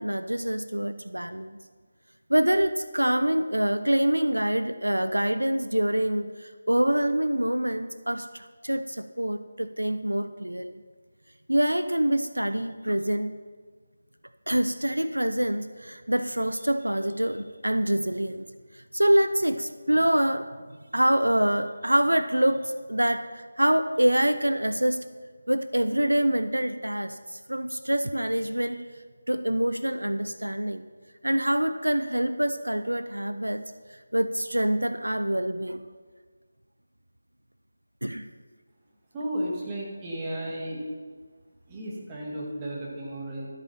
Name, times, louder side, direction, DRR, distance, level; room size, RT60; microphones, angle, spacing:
voice 1, 0.0-1.6 2.3-10.8 11.5-13.3 14.5-18.4 18.7-20.5 20.9-25.0 25.5-28.8 29.3-30.8 31.2-33.6 33.9-35.8 38.0-38.3, right 1 dB, 90° right, 11 dB, 0.5 m, -25 dB
voice 2, 39.1-40.8 41.7-43.5, right 1 dB, 15° right, -4 dB, 2.2 m, -33 dB
13.0 x 8.2 x 5.7 m, 1.5 s
figure-of-eight pair, 160°, 0 cm